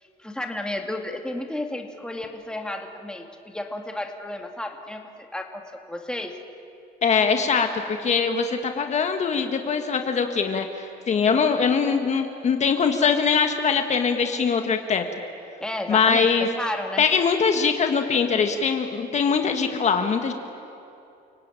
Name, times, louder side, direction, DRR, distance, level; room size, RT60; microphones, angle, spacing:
voice 1, 0.2-6.4 15.6-17.0, left 1 dB, 5° left, 3 dB, 2.3 m, -32 dB
voice 2, 7.0-15.0 15.9-16.5 17.0-20.3, left 6 dB, 40° left, 6 dB, 1.7 m, -22 dB
29.5 x 18.5 x 9.0 m, 2.8 s
cardioid pair, 110°, 17 cm